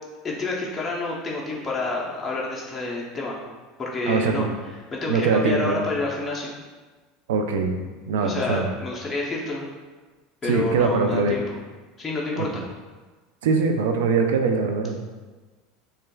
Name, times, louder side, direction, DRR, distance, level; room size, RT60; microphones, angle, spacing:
voice 1, 0.2-3.4 3.8-4.5 4.9-6.5 8.2-9.7 10.4-11.6 12.0-12.6, left 2 dB, 20° left, -4 dB, 0.7 m, -28 dB
voice 2, 4.1-4.5 5.1-5.9 7.3-7.8 8.1-8.7 10.4-11.4 12.4-12.6 13.4-15.0, right 4 dB, 85° right, 5 dB, 0.4 m, -22 dB
6.3 x 2.3 x 2.2 m, 1.3 s
supercardioid pair, 115°, 0 cm